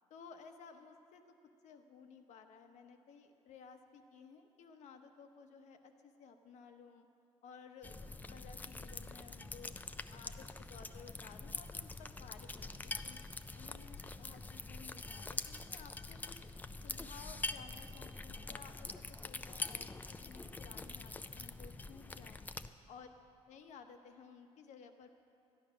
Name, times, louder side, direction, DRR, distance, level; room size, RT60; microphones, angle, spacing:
voice 1, 0.1-1.2 1.6-7.1 7.4-7.9 8.3-9.8 10.1-13.2 13.6-16.4 16.8-22.4 22.9-23.1 23.5-25.1, left 6 dB, 80° left, 6 dB, 1.0 m, -56 dB
sound 1, 7.8-22.7, left 3 dB, 15° left, 0.3 m, -45 dB
13.5 x 10.5 x 6.2 m, 2.6 s
cardioid pair, 140°, 12 cm